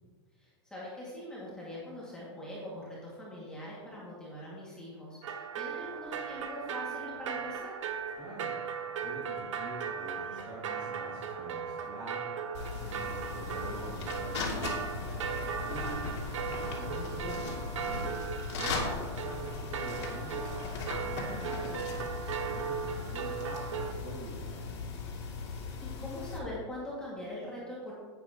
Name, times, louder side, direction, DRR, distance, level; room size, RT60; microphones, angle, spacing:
voice 1, 0.4-7.8 16.6-17.1 21.0-21.7 25.5-27.9, left 1 dB, 5° left, -7 dB, 2.0 m, -43 dB
sound 1, 5.2-23.9, right 7 dB, 85° right, 0.9 m, -38 dB
voice 2, 8.1-8.5 9.0-12.2 12.6-16.1 16.6-18.3 18.5-20.4 20.9-25.0, right 1 dB, 20° right, -10 dB, 2.4 m, -45 dB
sound 2, 12.5-26.4, left 4 dB, 65° left, 2.6 m, -38 dB
10.0 x 9.1 x 2.9 m, 1.5 s
supercardioid pair, 155°, 15 cm